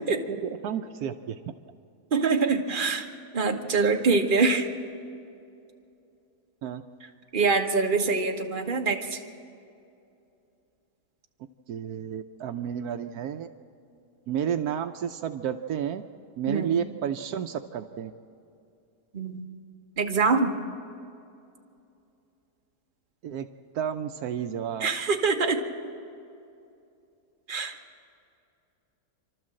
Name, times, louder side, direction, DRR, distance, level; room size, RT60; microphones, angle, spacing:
voice 1, 0.0-1.4 6.6-6.8 11.7-13.5 14.3-16.0 16.4-18.1 23.2-23.5 23.7-24.9, right 8 dB, 75° right, 7 dB, 1.2 m, -31 dB
voice 2, 2.1-3.1 3.3-4.7 7.3-9.2 16.5-16.8 19.1-19.4 20.0-20.6 24.8-25.6 27.5-27.7, right 4 dB, 35° right, 3 dB, 1.4 m, -24 dB
28.0 x 12.5 x 7.6 m, 2.6 s
omnidirectional pair, 1.7 m